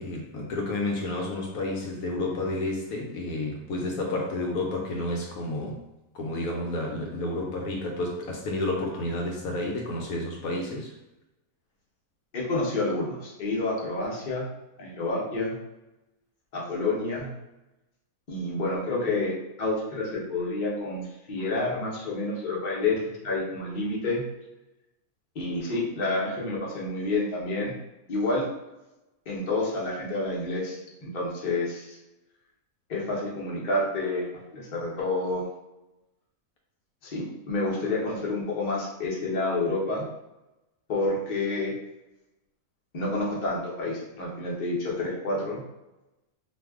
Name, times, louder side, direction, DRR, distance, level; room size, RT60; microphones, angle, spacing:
voice 1, 0.0-5.8 6.1-10.9, left 2 dB, 75° left, -1 dB, 1.0 m, -30 dB
voice 2, 12.3-14.5 14.8-15.6 16.5-17.3 18.3-24.2 25.3-27.7 28.1-28.5 29.3-32.0 32.9-34.3 34.5-35.5 37.0-40.1 40.9-41.7 42.9-45.6, left 2 dB, 40° left, -4 dB, 0.7 m, -29 dB
2.6 x 2.3 x 3.4 m, 0.98 s
omnidirectional pair, 1.6 m